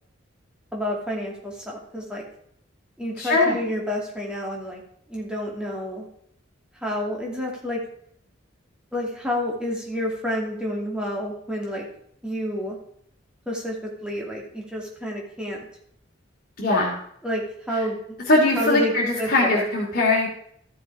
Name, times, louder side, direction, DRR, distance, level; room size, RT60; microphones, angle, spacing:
voice 1, 0.7-2.2 3.0-4.8 5.1-6.1 6.8-7.8 8.9-11.8 12.2-12.8 13.5-15.7 17.2-18.0 18.6-18.9 19.2-19.7, equal, 5° right, -2 dB, 2.6 m, -29 dB
voice 2, 3.2-3.5 16.6-17.0 17.7-17.8 18.3-20.3, left 2 dB, 50° left, -4 dB, 2.8 m, -21 dB
14.0 x 6.9 x 4.9 m, 0.68 s
head